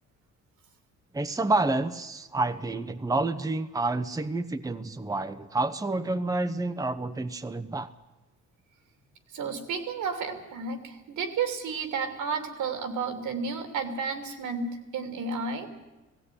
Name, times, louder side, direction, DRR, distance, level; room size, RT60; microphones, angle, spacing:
voice 1, 1.1-7.9, right 2 dB, 10° right, 9 dB, 0.9 m, -29 dB
voice 2, 9.3-15.7, right 5 dB, 80° right, 7 dB, 3.0 m, -32 dB
17.0 x 16.5 x 9.9 m, 1.1 s
cardioid pair, 90°, 30 cm